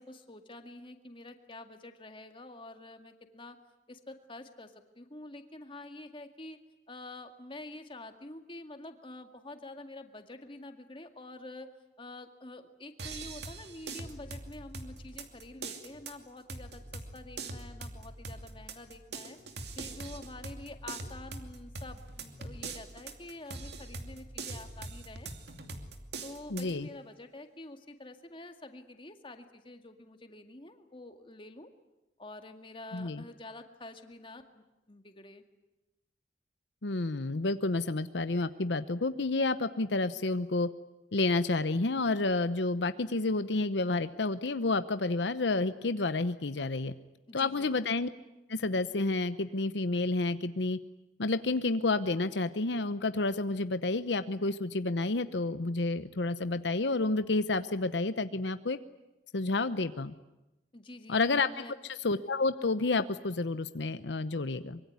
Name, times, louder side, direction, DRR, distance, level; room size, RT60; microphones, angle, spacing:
voice 1, 0.0-3.6 3.9-6.6 6.9-11.7 12.0-19.4 19.8-25.3 26.2-31.7 32.2-35.4 47.3-47.8 60.7-61.7, left 2 dB, 30° left, 6 dB, 2.1 m, -47 dB
sound 1, 13.0-26.7, right 3 dB, 65° right, 2.6 m, -43 dB
voice 2, 26.5-26.9 32.9-33.2 36.8-40.7 41.1-46.9 47.3-48.1 48.5-50.8 51.2-58.8 59.3-60.1 61.1-61.5 62.0-64.8, left 3 dB, 85° left, 12 dB, 0.9 m, -30 dB
24.5 x 23.0 x 9.6 m, 0.98 s
head